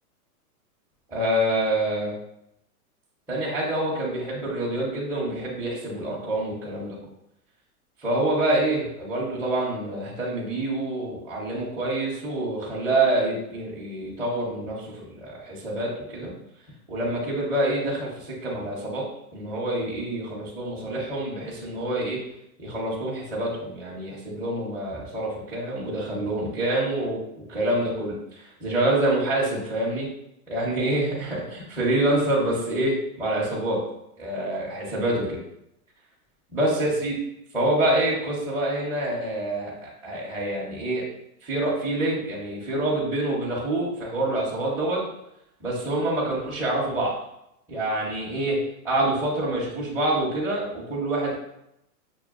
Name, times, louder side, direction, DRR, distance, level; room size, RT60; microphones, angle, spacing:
voice 1, 1.1-2.1 3.3-7.0 8.0-16.3 16.9-19.0 19.3-22.2 22.6-27.2 27.5-30.1 30.5-33.8 34.2-35.4 36.5-37.2 37.5-39.7 40.0-41.0 41.4-45.0 45.6-47.1 47.7-48.6 48.8-51.4, right 1 dB, 5° right, -9 dB, 0.5 m, -26 dB
6.2 x 2.2 x 2.3 m, 0.81 s
hypercardioid pair, 140°, 46 cm